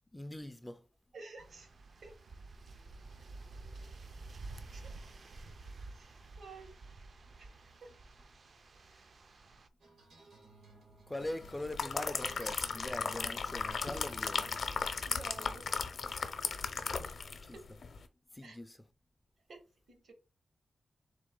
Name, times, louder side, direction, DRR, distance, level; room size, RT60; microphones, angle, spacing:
voice 1, 0.1-0.8 4.6-4.8 11.1-14.5 17.4-17.6 18.3-18.8, left 1 dB, 10° left, 0.3 m, -42 dB
voice 2, 1.1-1.7 2.0-2.1 4.7-4.9 5.9-6.7 7.4-7.5 7.8-7.9 8.9-9.1 15.0-15.7 17.0-17.2 17.5-17.6 18.4-18.6 19.5-19.6 19.9-20.1, right 3 dB, 70° right, 1.1 m, -51 dB
sound 1, 1.4-9.7, right 3 dB, 50° right, 0.4 m, -50 dB
sound 2, 9.8-17.4, right 2 dB, 85° right, 1.7 m, -59 dB
sound 3, 11.4-17.5 17.8-18.0, left 5 dB, 60° left, 0.6 m, -36 dB
3.8 x 2.9 x 3.7 m
wide cardioid pair, 125°, 0 cm